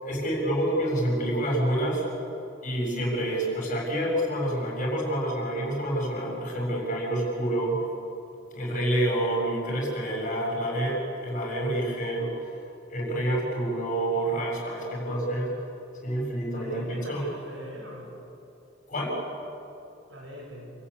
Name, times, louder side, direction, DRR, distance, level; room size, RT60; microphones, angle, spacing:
voice 1, 0.0-2.0 2.6-7.8 8.5-12.5 12.9-15.5 16.0-17.2 18.9-19.2, right 1 dB, 45° left, -2 dB, 7.6 m, -28 dB
voice 2, 16.5-18.1 20.1-20.7, equal, 80° right, -1 dB, 7.6 m, -42 dB
28.5 x 15.5 x 8.7 m, 2.8 s
head